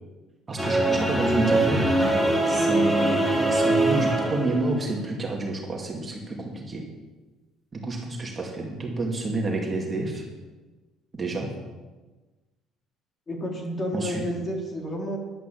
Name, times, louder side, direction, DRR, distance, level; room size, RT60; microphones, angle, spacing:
voice 1, 0.5-1.9 2.5-3.2 3.5-6.8 7.7-10.2 11.1-11.5 13.9-14.2, right 2 dB, 25° right, -1 dB, 2.2 m, -29 dB
sound 1, 0.6-5.0, right 2 dB, 10° left, 2.6 m, -23 dB
voice 2, 13.3-15.2, equal, 25° left, 0 dB, 3.0 m, -30 dB
11.0 x 9.3 x 7.5 m, 1.2 s
cardioid pair, 135°, 0 cm